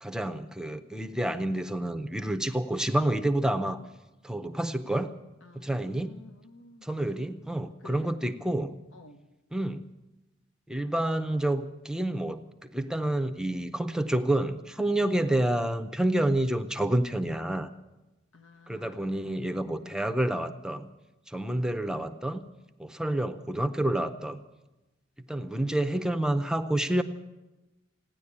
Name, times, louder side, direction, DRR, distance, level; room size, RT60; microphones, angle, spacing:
voice 1, 0.0-3.8 4.2-5.1 5.6-6.2 6.8-8.8 9.5-9.9 10.7-17.7 18.7-20.9 21.3-22.4 22.8-24.4 25.3-27.0, right 1 dB, 5° right, 8 dB, 0.6 m, -29 dB
voice 2, 5.4-7.0 7.8-8.1 8.9-9.2 18.3-19.4 19.8-20.0, left 3 dB, 80° left, 7 dB, 1.2 m, -52 dB
16.5 x 10.5 x 8.6 m, 1.0 s
head